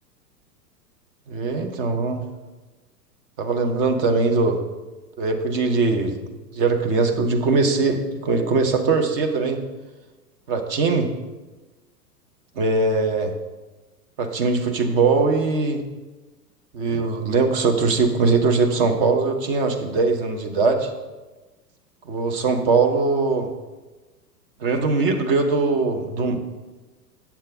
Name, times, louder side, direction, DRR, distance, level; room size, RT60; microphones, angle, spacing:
voice 1, 1.3-2.2 3.4-4.6 5.2-6.2 6.5-9.6 10.5-11.1 12.6-13.3 14.2-15.8 16.7-20.9 22.1-23.5 24.6-26.4, right 4 dB, 35° right, 5 dB, 0.8 m, -21 dB
7.5 x 7.0 x 3.5 m, 1.2 s
figure-of-eight pair, 100°, 49 cm